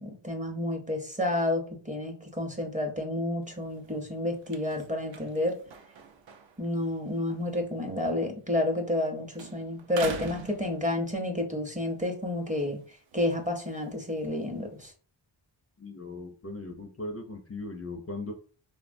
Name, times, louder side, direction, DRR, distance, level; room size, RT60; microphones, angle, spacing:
voice 1, 0.0-5.6 6.6-12.8 13.1-14.9, left 1 dB, 15° right, 3 dB, 0.6 m, -30 dB
sound 1, 3.4-9.1 9.3-11.4 11.8-14.9, right 6 dB, 65° right, 0.6 m, -45 dB
voice 2, 15.8-18.3, left 2 dB, 30° left, 3 dB, 0.4 m, -38 dB
3.0 x 2.0 x 2.5 m, 0.41 s
cardioid pair, 55°, 49 cm